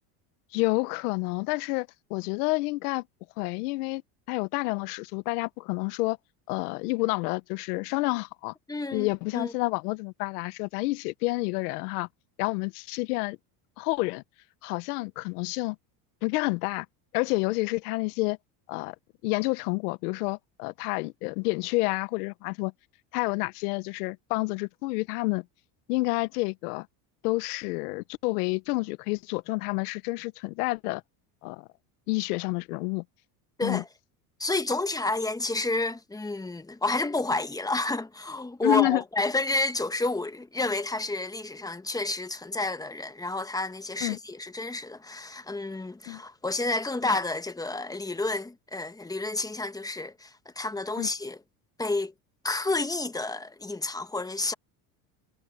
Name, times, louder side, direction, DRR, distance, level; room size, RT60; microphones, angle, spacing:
voice 1, 0.5-3.0 3.4-4.0 4.3-6.2 6.5-8.5 8.9-12.1 12.4-13.4 13.8-14.2 14.6-15.8 16.2-16.9 17.1-18.4 18.7-18.9 19.2-22.7 23.1-25.4 25.9-26.9 27.2-31.0 31.4-31.7 32.1-33.0 33.6-33.8 38.6-39.0 44.0-44.2 46.1-46.2 51.0-51.1, left 24 dB, 85° left, 0.9 m, -29 dB
voice 2, 8.7-9.1 9.3-9.5 33.6-33.9 34.4-51.4 51.8-52.1 52.4-54.5, left 2 dB, 10° left, 1.1 m, -30 dB
supercardioid pair, 115°, 45 cm